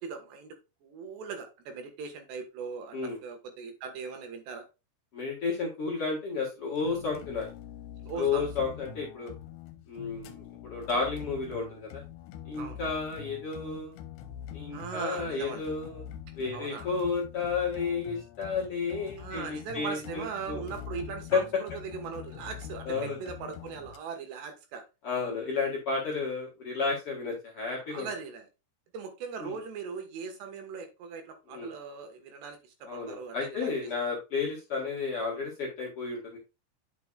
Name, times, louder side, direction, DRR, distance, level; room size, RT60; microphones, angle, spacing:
voice 1, 0.0-4.7 8.0-8.5 12.6-12.8 14.7-15.6 16.5-16.9 19.2-24.8 27.9-28.5 28.9-33.7, right 5 dB, 85° right, 5 dB, 3.6 m, -39 dB
voice 2, 5.1-7.5 8.2-9.3 9.9-12.0 12.5-13.9 14.5-16.0 16.4-20.6 21.3-21.4 22.8-23.2 25.0-28.1 29.4-29.6 31.5-31.7 32.9-36.4, left 4 dB, 50° left, -2 dB, 1.8 m, -32 dB
sound 1, 6.8-24.0, left 9 dB, 85° left, 2.9 m, -45 dB
9.7 x 6.0 x 2.3 m, 0.27 s
omnidirectional pair, 4.8 m